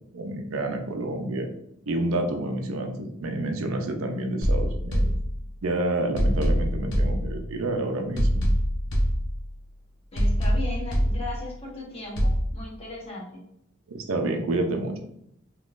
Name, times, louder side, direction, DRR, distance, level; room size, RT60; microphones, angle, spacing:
voice 1, 0.1-1.5 1.9-5.1 5.6-8.5 13.9-15.0, right 2 dB, 90° right, 4 dB, 0.6 m, -29 dB
sound 1, 4.4-5.7 6.2-7.7 8.2-9.7 10.2-11.7 12.2-12.4, equal, 60° left, 0.8 m, -25 dB
voice 2, 10.1-13.4, left 2 dB, 30° left, -4 dB, 1.0 m, -37 dB
3.6 x 3.0 x 2.5 m, 0.74 s
head